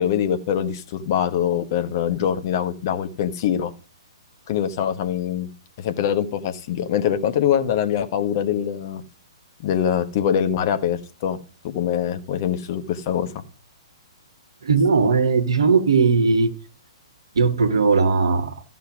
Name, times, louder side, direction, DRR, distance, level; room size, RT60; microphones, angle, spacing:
voice 1, 0.0-3.7 4.5-5.5 5.8-9.0 9.6-11.4 11.6-13.4, left 9 dB, 40° left, 1.3 m, -23 dB
voice 2, 14.6-16.5 17.3-18.5, right 4 dB, 65° right, 1.4 m, -18 dB
14.0 x 5.9 x 6.3 m
figure-of-eight pair, 120°, 3 cm